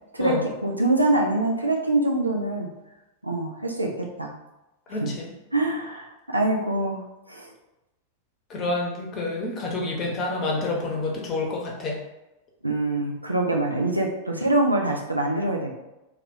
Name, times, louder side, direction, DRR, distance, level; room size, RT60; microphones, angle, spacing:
voice 1, 0.1-2.7 3.2-4.3 4.9-5.2 5.5-7.5 12.6-15.7, right 2 dB, 85° right, 1 dB, 0.4 m, -24 dB
voice 2, 4.9-5.3 8.5-12.0, left 2 dB, 30° left, -1 dB, 0.8 m, -28 dB
2.3 x 2.3 x 3.5 m, 0.97 s
figure-of-eight pair, 90°, 0 cm